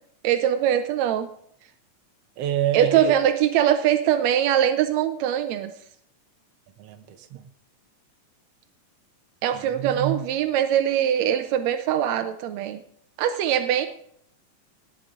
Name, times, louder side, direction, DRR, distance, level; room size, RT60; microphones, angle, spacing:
voice 1, 0.2-1.3 2.7-5.7 9.4-12.8 13.2-13.9, right 10 dB, 85° right, 1.5 m, -22 dB
voice 2, 2.4-3.1 6.8-7.4 9.5-10.2, right 11 dB, 65° right, 1.6 m, -27 dB
18.5 x 9.1 x 3.7 m
omnidirectional pair, 4.0 m